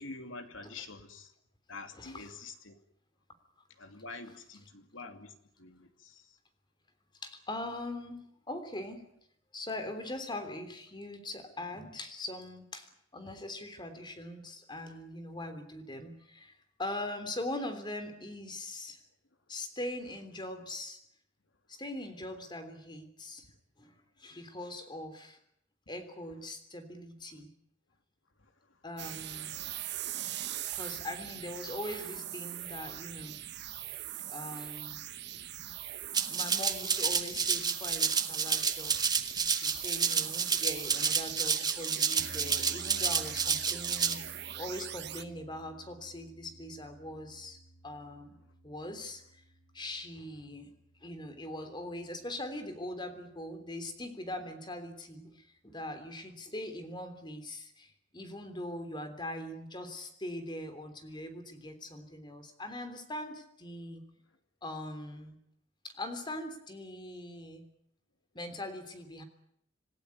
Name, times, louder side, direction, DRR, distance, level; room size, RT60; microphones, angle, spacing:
voice 1, 0.0-1.3 1.7-2.8 3.8-6.4 35.7-35.9 39.4-39.5, left 3 dB, 75° left, 7 dB, 2.7 m, -47 dB
voice 2, 1.9-2.3 7.2-9.1 9.5-19.0 19.5-21.0 21.7-23.5 23.8-25.4 25.9-27.5 28.8-29.5 30.1-30.3 30.6-33.4 33.9-35.0 36.3-38.9 39.2-47.6 47.8-48.4 48.6-49.4 49.7-50.7 51.0-64.0 64.6-65.3 65.8-67.7 68.3-69.2, left 1 dB, 25° left, 9 dB, 3.3 m, -41 dB
sound 1, 29.0-45.2, right 12 dB, 55° right, 1.3 m, -41 dB
Rattle (instrument), 36.1-44.1, right 6 dB, 20° right, 1.6 m, -30 dB
sound 2, 42.2-52.6, right 1 dB, 50° left, 6.5 m, -54 dB
27.0 x 15.5 x 9.7 m, 0.74 s
head